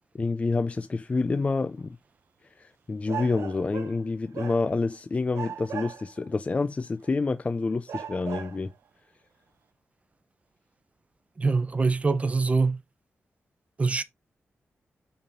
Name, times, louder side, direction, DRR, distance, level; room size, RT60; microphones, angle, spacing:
voice 1, 0.1-1.9 2.6-8.7, left 3 dB, 30° left, 0.5 m, -28 dB
sound 1, 1.6-1.7 3.1-4.1 4.3-5.0 5.3-6.3 7.0-7.1 7.9-8.7, right 8 dB, 85° right, 0.5 m, -38 dB
voice 2, 11.4-12.8 13.8-14.0, right 4 dB, 30° right, 0.9 m, -24 dB
8.8 x 4.3 x 3.8 m
wide cardioid pair, 125°, 5 cm